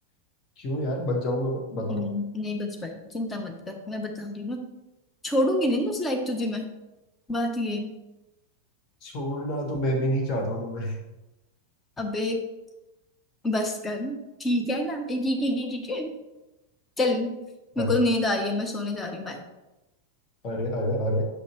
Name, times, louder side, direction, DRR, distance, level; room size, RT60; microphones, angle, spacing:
voice 1, 0.6-2.0 9.0-11.0 17.8-17.9 20.4-21.2, equal, 35° left, 0 dB, 1.5 m, -28 dB
voice 2, 1.9-4.7 5.2-6.7 7.3-7.9 12.0-12.4 13.4-16.1 17.0-17.3 17.8-19.4, left 1 dB, 15° left, 4 dB, 0.9 m, -27 dB
6.4 x 5.6 x 3.1 m, 0.99 s
figure-of-eight pair, 90°, 0 cm